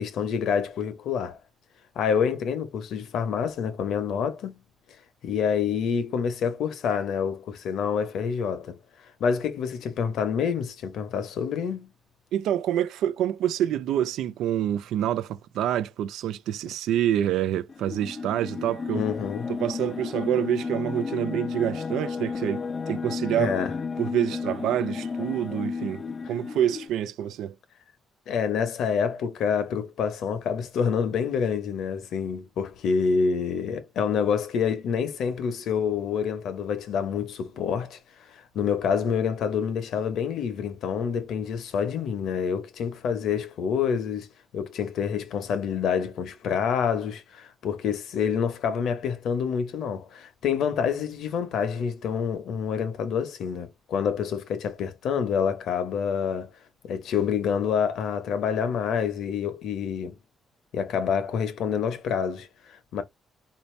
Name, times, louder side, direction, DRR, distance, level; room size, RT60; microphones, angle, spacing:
voice 1, 0.0-1.4 1.9-4.6 5.2-8.8 9.2-11.9 18.9-19.5 23.4-23.7 28.3-38.0 38.3-44.3 44.5-56.5 56.8-60.2 60.7-63.0, left 7 dB, 75° left, 0.9 m, -27 dB
voice 2, 12.3-19.0 19.5-23.6 24.0-27.5, right 11 dB, 85° right, 0.5 m, -27 dB
sound 1, 17.7-26.9, left 5 dB, 35° left, 0.4 m, -33 dB
4.2 x 2.7 x 3.2 m
cardioid pair, 90°, 0 cm